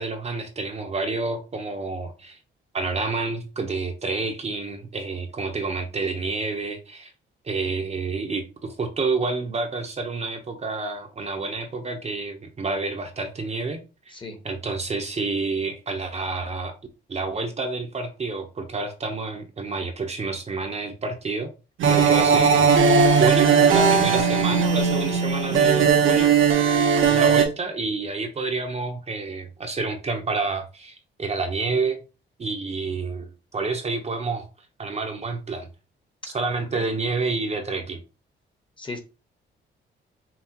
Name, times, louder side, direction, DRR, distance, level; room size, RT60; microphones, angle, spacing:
voice 1, 0.0-2.4 2.7-7.1 7.4-13.8 14.4-16.7 17.1-21.5 21.9-22.7 23.1-26.4 27.1-32.0 32.4-34.5 34.8-35.7 36.2-38.0, right 3 dB, 35° right, 0.7 m, -29 dB
voice 2, 14.1-14.4 36.2-36.4 36.7-36.9 38.8-39.0, left 2 dB, 25° left, 1.0 m, -36 dB
sound 1, 21.8-27.5, right 6 dB, 80° right, 0.9 m, -18 dB
5.7 x 2.4 x 2.9 m
cardioid pair, 110°, 20 cm